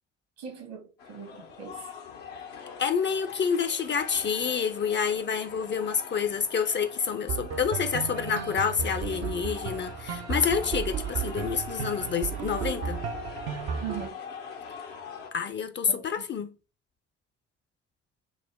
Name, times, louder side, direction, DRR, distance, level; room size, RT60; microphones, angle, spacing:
voice 1, 0.4-1.8 13.8-14.1 15.9-16.2, right 7 dB, 70° right, 1.5 m, -40 dB
sound 1, 1.0-15.3, left 6 dB, 70° left, 0.8 m, -43 dB
voice 2, 2.8-13.0 15.3-16.6, left 6 dB, 35° left, 0.5 m, -28 dB
sound 2, 7.3-14.1, right 7 dB, 50° right, 0.6 m, -34 dB
4.8 x 2.0 x 3.4 m
figure-of-eight pair, 45°, 34 cm